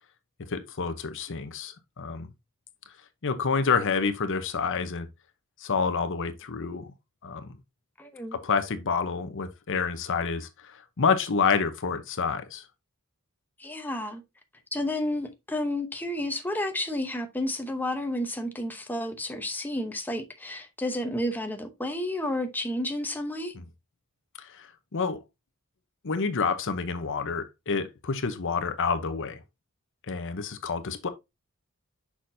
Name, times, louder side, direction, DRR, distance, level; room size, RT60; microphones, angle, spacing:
voice 1, 0.5-2.3 3.2-5.1 5.6-6.9 7.2-7.5 8.3-12.6 24.4-25.2 26.0-29.4 30.1-31.1, left 5 dB, 60° left, 0.8 m, -28 dB
voice 2, 8.0-8.4 13.6-14.2 14.7-23.5, left 1 dB, 10° left, 0.8 m, -31 dB
6.5 x 5.9 x 2.7 m
head